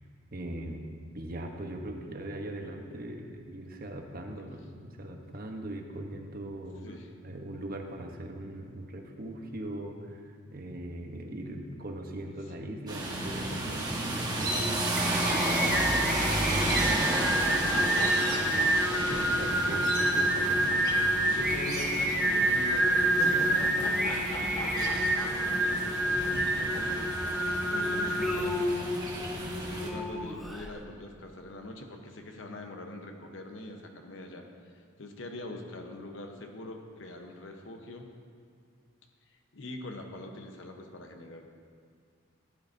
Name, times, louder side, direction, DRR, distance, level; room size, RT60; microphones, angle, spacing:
voice 1, 0.3-6.8 7.2-16.0 16.6-20.5, right 1 dB, 50° right, 3 dB, 1.0 m, -40 dB
voice 2, 6.8-7.1 12.3-12.7 21.2-29.0 29.7-34.5 34.7-38.1 39.5-41.4, left 2 dB, 70° left, 3 dB, 1.0 m, -43 dB
sound 1, 12.9-29.9, right 1 dB, 20° right, 1.3 m, -32 dB
Singing, 14.5-30.7, right 1 dB, ahead, 0.7 m, -28 dB
sound 2, 16.5-21.3 21.5-21.6 22.8-25.8 26.1-26.9, equal, 35° left, 2.3 m, -40 dB
14.5 x 10.5 x 2.7 m, 2.2 s
head